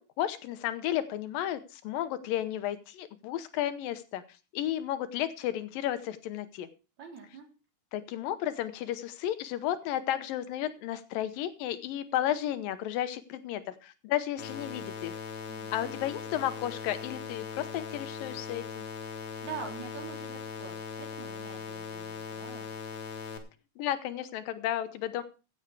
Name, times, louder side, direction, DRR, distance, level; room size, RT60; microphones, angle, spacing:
voice 1, 0.0-4.2 4.5-6.7 7.9-15.2 15.7-18.9 23.8-25.2, left 12 dB, 85° left, 12 dB, 2.6 m, -33 dB
voice 2, 7.0-7.5 15.5-16.0 19.4-22.7, right 6 dB, 55° right, 2 dB, 4.6 m, -44 dB
sound 1, 14.4-23.4, left 6 dB, 55° left, 2.7 m, -40 dB
15.5 x 8.2 x 4.8 m, 0.33 s
omnidirectional pair, 4.0 m